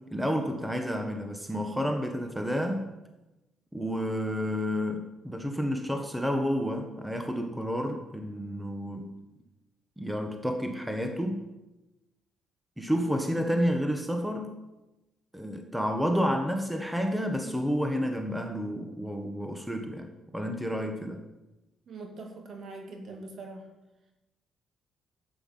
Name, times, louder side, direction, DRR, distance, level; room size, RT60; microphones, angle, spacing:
voice 1, 0.1-2.9 3.7-9.1 10.0-11.4 12.8-14.5 15.3-20.1 20.3-21.2, equal, 5° right, 4 dB, 1.4 m, -30 dB
voice 2, 21.9-23.6, right 3 dB, 55° right, 2 dB, 2.5 m, -42 dB
11.5 x 8.5 x 5.6 m, 1.0 s
cardioid pair, 90°, 0 cm